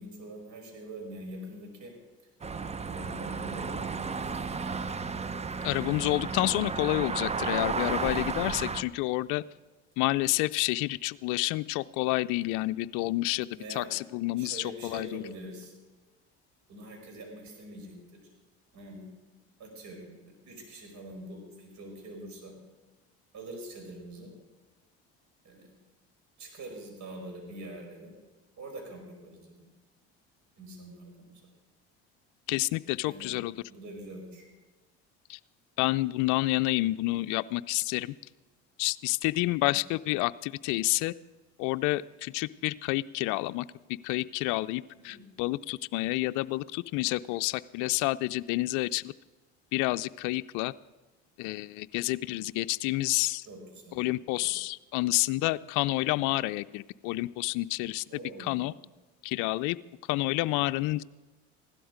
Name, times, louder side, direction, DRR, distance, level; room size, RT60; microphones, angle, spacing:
voice 1, 0.0-1.9 2.8-4.0 4.2-4.3 13.5-13.9 14.4-15.7 16.7-18.2 18.7-19.1 19.6-22.5 23.3-24.3 25.4-25.7 26.4-28.1 28.6-29.6 30.6-31.4 33.1-33.4 33.7-34.4 39.6-39.7 45.0-45.3 53.5-54.1 54.4-54.5 58.1-58.6, right 1 dB, 60° right, 2 dB, 5.1 m, -44 dB
sound 1, 2.4-8.8, right 4 dB, 20° right, 0.7 m, -33 dB
voice 2, 5.6-9.4 10.0-15.2 32.5-33.5 35.3-35.4 35.8-38.1 38.8-41.1 41.6-43.7 44.0-49.1 49.7-50.7 51.4-53.5 54.0-58.0 58.4-58.7 59.2-59.8 60.1-61.0, left 19 dB, 70° left, 13 dB, 0.5 m, -29 dB
16.0 x 12.0 x 5.1 m, 1.2 s
supercardioid pair, 75°, 33 cm